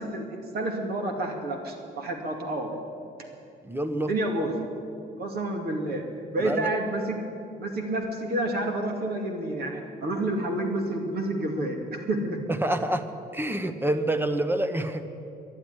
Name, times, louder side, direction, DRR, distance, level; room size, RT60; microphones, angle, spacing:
voice 1, 0.0-2.7 4.0-4.6 5.2-6.0 6.3-7.2 7.6-12.4, right 1 dB, 60° right, 2 dB, 2.3 m, -29 dB
voice 2, 3.6-4.1 6.4-6.7 12.6-13.1 13.3-15.1, right 1 dB, 10° right, 9 dB, 1.0 m, -27 dB
11.5 x 10.5 x 10.0 m, 2.6 s
cardioid pair, 100°, 18 cm